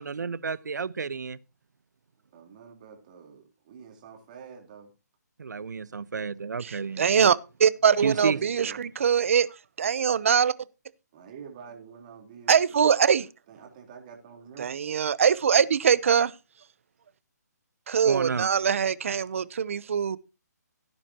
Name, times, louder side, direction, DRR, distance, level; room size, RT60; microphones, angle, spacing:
voice 1, 0.0-1.4 5.4-7.1 8.0-8.4 18.0-18.5, right 5 dB, 85° right, 1.0 m, -31 dB
voice 2, 2.3-4.9 8.0-8.8 11.1-12.9 13.5-14.8, right 7 dB, 30° right, 3.7 m, -46 dB
voice 3, 6.6-9.5 9.8-10.5 12.5-13.3 14.6-16.3 17.9-20.2, right 7 dB, 50° right, 0.8 m, -23 dB
16.5 x 9.9 x 2.9 m
hypercardioid pair, 170°, 9 cm